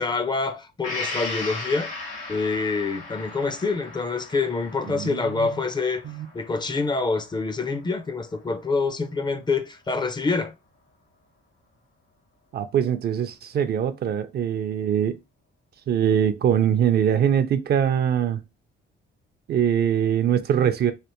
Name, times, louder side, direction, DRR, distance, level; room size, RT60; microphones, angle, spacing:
voice 1, 0.0-1.9 2.3-6.1 6.3-10.5, left 4 dB, 20° left, 0.4 m, -26 dB
Gong, 0.8-8.5 8.9-9.0, left 3 dB, 75° left, 1.2 m, -37 dB
voice 2, 4.9-5.6 6.0-6.3 12.5-15.2 15.9-18.4 19.5-20.9, right 9 dB, 55° right, 0.4 m, -22 dB
3.3 x 2.5 x 2.9 m
cardioid pair, 90°, 20 cm